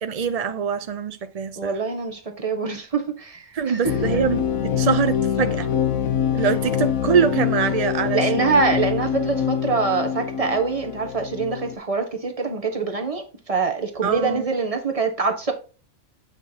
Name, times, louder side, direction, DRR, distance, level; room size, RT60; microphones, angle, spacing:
voice 1, 0.0-1.8 3.5-5.7 6.3-8.6 14.0-14.5, right 7 dB, 70° right, 0.3 m, -24 dB
voice 2, 1.6-4.1 8.1-15.5, right 4 dB, 25° right, 1.3 m, -24 dB
sound 1, 3.8-11.8, left 8 dB, 85° left, 1.5 m, -25 dB
8.9 x 5.8 x 2.8 m
omnidirectional pair, 1.4 m